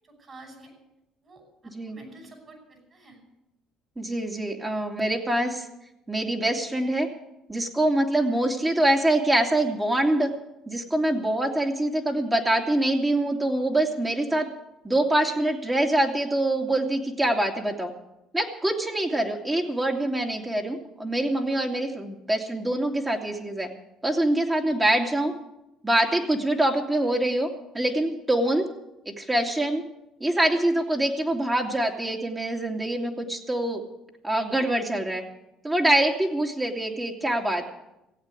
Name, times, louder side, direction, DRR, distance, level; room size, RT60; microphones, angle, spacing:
voice 1, 0.0-0.7 1.2-3.2, right 2 dB, 40° right, 4 dB, 5.5 m, -49 dB
voice 2, 4.0-5.7 6.1-7.1 7.5-10.3 10.7-14.5 14.8-17.9 18.3-23.7 24.0-25.3 25.8-28.7 29.1-29.8 30.2-33.8 34.2-35.2 35.6-37.7, right 1 dB, 20° right, 1 dB, 2.5 m, -24 dB
16.0 x 8.4 x 9.7 m, 0.92 s
supercardioid pair, 70°, 0 cm